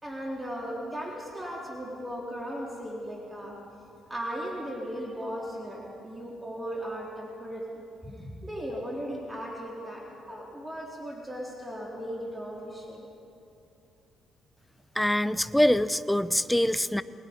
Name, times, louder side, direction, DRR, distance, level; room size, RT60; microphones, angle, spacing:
voice 1, 0.0-3.6 4.1-13.1, equal, 15° right, -2 dB, 3.4 m, -37 dB
voice 2, 15.0-17.0, left 1 dB, 5° left, 14 dB, 0.7 m, -24 dB
29.0 x 20.0 x 5.2 m, 2.7 s
cardioid pair, 90°, 0 cm